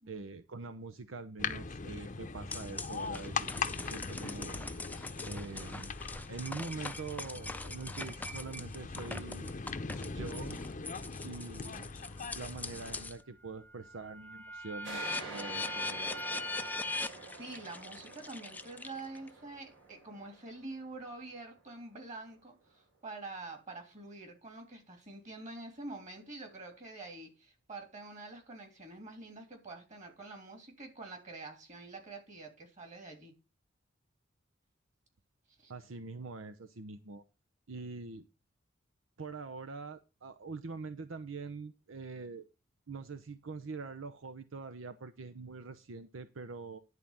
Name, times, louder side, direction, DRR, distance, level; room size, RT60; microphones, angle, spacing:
voice 1, 0.1-4.6 5.3-5.9 6.3-9.5 10.0-10.7 11.2-11.9 12.3-15.0 15.3-16.7 35.7-37.2 37.7-38.3 39.2-42.4 42.9-46.8, right 4 dB, 90° right, 0.7 m, -44 dB
porticcio boules, 1.4-13.1, left 4 dB, 40° left, 0.7 m, -41 dB
sound 1, 2.5-13.2 13.6-19.3, left 2 dB, 10° left, 0.5 m, -42 dB
sound 2, 14.8-22.0, right 3 dB, 70° right, 4.3 m, -48 dB
voice 2, 15.3-15.8 17.3-33.3 35.6-35.7, right 2 dB, 40° right, 3.1 m, -47 dB
11.0 x 4.1 x 7.4 m
head